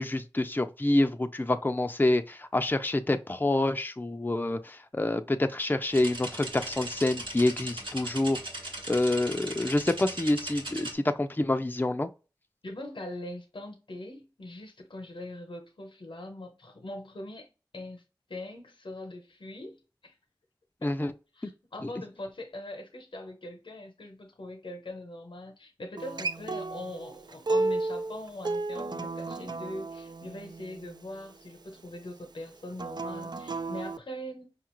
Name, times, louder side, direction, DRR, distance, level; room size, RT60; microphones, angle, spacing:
voice 1, 0.0-8.4 8.9-12.1 20.8-21.1, left 2 dB, 25° left, 0.4 m, -27 dB
sound 1, 5.9-10.9, right 1 dB, 90° right, 1.2 m, -38 dB
voice 2, 12.6-17.5 17.7-18.0 18.3-20.1 20.8-20.9 21.3-34.6, left 1 dB, 90° left, 0.8 m, -42 dB
Acoustic guitar, 26.0-31.2 32.7-34.0, right 3 dB, 60° right, 0.4 m, -33 dB
5.1 x 2.4 x 3.0 m
wide cardioid pair, 45°, 8 cm